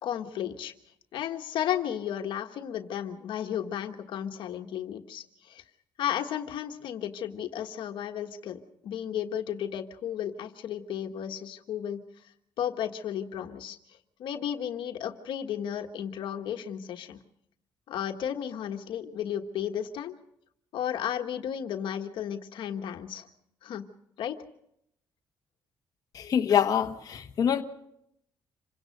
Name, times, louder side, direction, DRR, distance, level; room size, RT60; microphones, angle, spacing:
voice 1, 0.0-0.7 1.1-5.6 6.0-12.0 12.6-13.8 14.2-17.2 17.9-20.1 20.7-23.3 23.6-23.9 24.2-24.4, left 9 dB, 75° left, 1.4 m, -33 dB
voice 2, 26.1-27.6, left 8 dB, 50° left, 1.3 m, -25 dB
27.0 x 17.0 x 6.6 m
cardioid pair, 125°, 8 cm